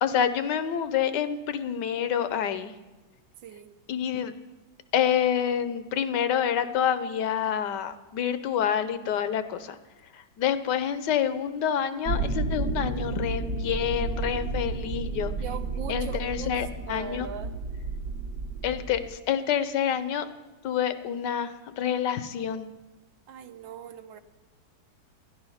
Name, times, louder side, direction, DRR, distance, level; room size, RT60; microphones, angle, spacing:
voice 1, 0.0-2.7 3.9-4.3 4.9-9.8 10.1-15.3 15.9-17.3 18.6-20.3 20.6-22.7, left 9 dB, 70° left, 12 dB, 1.3 m, -27 dB
voice 2, 3.4-3.7 15.4-16.6 16.9-17.6 23.3-24.2, right 8 dB, 80° right, 10 dB, 1.5 m, -40 dB
sound 1, 12.0-19.1, right 3 dB, 55° right, 1.6 m, -32 dB
12.0 x 11.0 x 5.6 m, 1.1 s
omnidirectional pair, 2.0 m